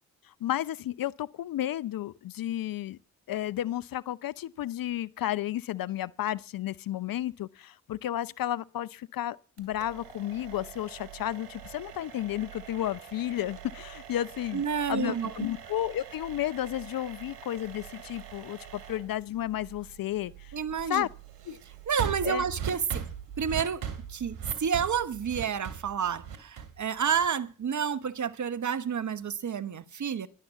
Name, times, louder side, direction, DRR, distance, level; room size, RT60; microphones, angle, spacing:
voice 1, 0.4-3.0 3.3-14.6 14.9-20.6 20.9-21.1 21.5-21.6 22.2-22.4, left 12 dB, 50° left, 0.7 m, -32 dB
sound 1, 9.6-27.5, right 8 dB, 70° right, 2.6 m, -42 dB
voice 2, 14.5-15.3 20.5-21.1 21.9-23.8 24.1-30.3, right 7 dB, 40° right, 1.2 m, -30 dB
12.5 x 11.5 x 7.1 m
hypercardioid pair, 40°, 43 cm